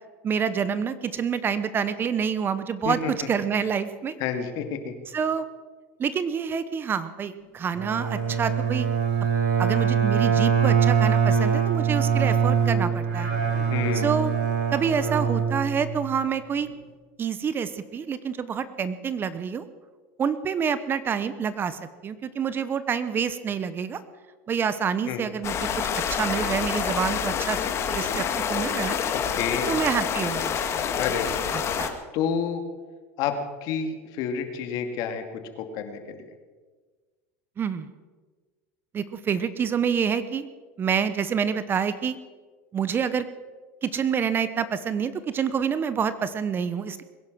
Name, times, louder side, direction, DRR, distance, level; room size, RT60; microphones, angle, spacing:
voice 1, 0.2-3.0 3.3-4.2 5.1-5.4 6.0-8.9 9.6-13.3 13.9-14.3 14.7-16.7 17.2-19.6 20.2-24.0 24.5-27.6 27.9-29.0 29.7-30.9 31.5-31.9 37.6-37.9 38.9-40.5 40.8-42.2 42.7-43.3 43.8-47.0, right 7 dB, 30° right, 14 dB, 1.0 m, -27 dB
voice 2, 2.8-3.3 4.2-4.9 13.7-14.1 25.1-25.3 29.1-29.7 31.0-31.5 32.1-32.6 33.2-36.2, left 7 dB, 55° left, 7 dB, 2.3 m, -29 dB
Bowed string instrument, 7.8-16.2, right 7 dB, 80° right, 4.2 m, -23 dB
sound 1, 25.4-31.9, left 7 dB, 40° left, 1.8 m, -27 dB
21.5 x 10.5 x 6.2 m, 1.4 s
supercardioid pair, 115°, 7 cm